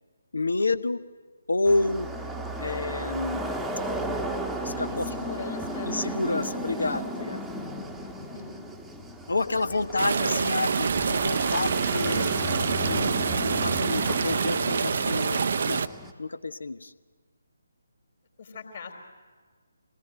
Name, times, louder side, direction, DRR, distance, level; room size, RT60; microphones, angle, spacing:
voice 1, 0.3-1.0 1.5-2.1 2.6-3.5 4.6-5.3 5.8-7.4 9.3-12.3 12.9-15.8 16.2-16.9, left 3 dB, 65° left, 15 dB, 1.0 m, -29 dB
sound 1, 1.6-16.1, equal, ahead, 1.1 m, -35 dB
voice 2, 4.9-6.4 8.2-8.6 9.5-10.8 18.4-18.9, left 4 dB, 45° left, 4 dB, 3.8 m, -41 dB
sound 2, 10.0-15.9, right 5 dB, 50° right, 0.6 m, -26 dB
25.0 x 19.0 x 9.0 m, 1.5 s
figure-of-eight pair, 145°, 0 cm